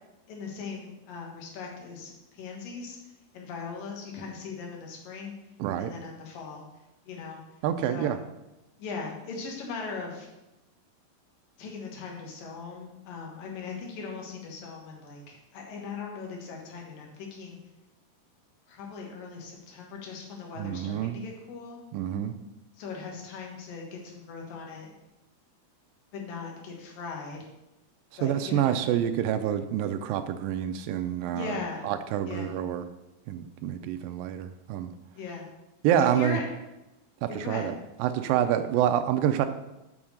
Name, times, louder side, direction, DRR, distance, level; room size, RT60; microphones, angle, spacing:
voice 1, 0.3-3.0 3.3-5.3 5.8-6.7 7.1-7.4 7.9-8.1 8.8-10.3 11.6-17.6 18.7-21.8 22.8-24.9 26.1-27.4 28.2-28.7 31.3-31.9 32.3-32.5 35.2-35.5 36.0-36.4 37.3-37.6, left 4 dB, 75° left, 0 dB, 3.2 m, -39 dB
voice 2, 5.6-5.9 7.6-8.2 20.6-21.2 21.9-22.4 28.2-31.6 31.8-32.9 33.3-34.9 35.8-36.4 37.2-37.7 38.0-39.5, right 10 dB, 85° right, 9 dB, 2.2 m, -27 dB
7.2 x 5.4 x 6.3 m, 0.97 s
omnidirectional pair, 4.0 m